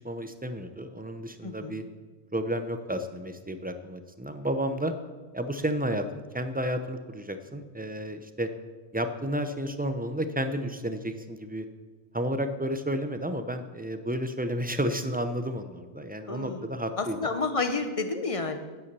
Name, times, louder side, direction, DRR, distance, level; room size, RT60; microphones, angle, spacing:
voice 1, 0.0-1.8 2.3-4.9 5.3-8.5 8.9-11.7 12.1-17.2, equal, 15° right, 8 dB, 0.3 m, -31 dB
voice 2, 1.4-1.7 16.3-18.6, left 3 dB, 30° left, 7 dB, 0.9 m, -30 dB
9.6 x 8.2 x 6.8 m, 1.3 s
omnidirectional pair, 1.2 m